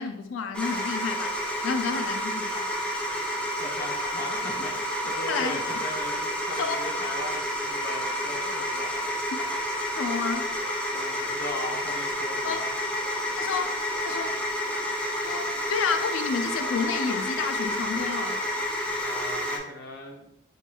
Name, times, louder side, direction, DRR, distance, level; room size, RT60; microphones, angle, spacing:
voice 1, 0.0-2.7 5.3-5.6 6.6-6.8 10.0-10.5 12.4-12.6 13.3-14.4 15.2-18.4, left 5 dB, 75° left, 7 dB, 0.4 m, -30 dB
vcr fastforward, 0.5-19.6, equal, 5° left, 0.5 m, -30 dB
voice 2, 3.6-9.3 10.9-12.7 19.0-20.3, left 1 dB, 50° left, -1 dB, 0.8 m, -39 dB
5.1 x 2.9 x 2.3 m, 0.83 s
head